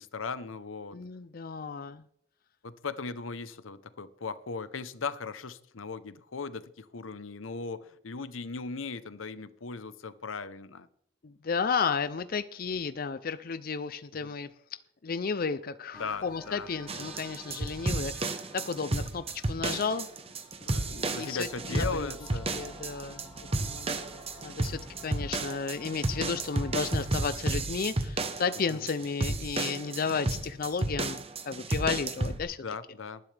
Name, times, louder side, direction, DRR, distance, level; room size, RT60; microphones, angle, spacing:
voice 1, 0.0-1.0 2.6-10.9 14.2-14.3 15.9-16.7 20.6-22.5 28.7-28.9 32.6-33.2, left 4 dB, 85° left, 14 dB, 0.8 m, -38 dB
voice 2, 0.9-2.0 11.2-14.5 15.0-20.1 20.8-22.1 22.5-23.3 23.6-24.0 24.4-32.6, left 5 dB, 45° left, 12 dB, 0.5 m, -33 dB
sound 1, 15.9-27.1, left 1 dB, 5° left, 5.3 m, -51 dB
sound 2, 16.9-32.4, right 2 dB, 30° right, 0.9 m, -32 dB
19.5 x 10.5 x 3.4 m, 0.69 s
head